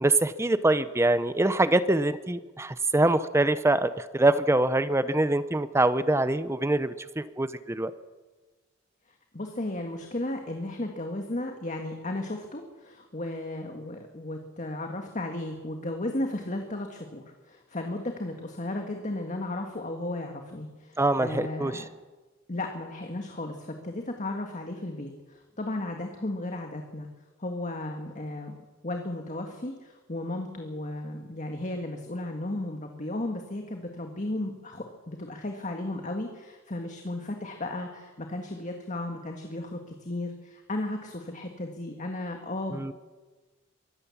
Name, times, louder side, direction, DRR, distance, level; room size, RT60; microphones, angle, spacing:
voice 1, 0.0-7.9 21.0-21.8 42.7-42.9, right 2 dB, 15° right, 14 dB, 0.6 m, -24 dB
voice 2, 9.3-21.9 22.5-27.1 27.4-28.5 28.8-42.9, left 1 dB, 35° left, 4 dB, 1.7 m, -34 dB
23.5 x 15.0 x 7.2 m, 1.3 s
head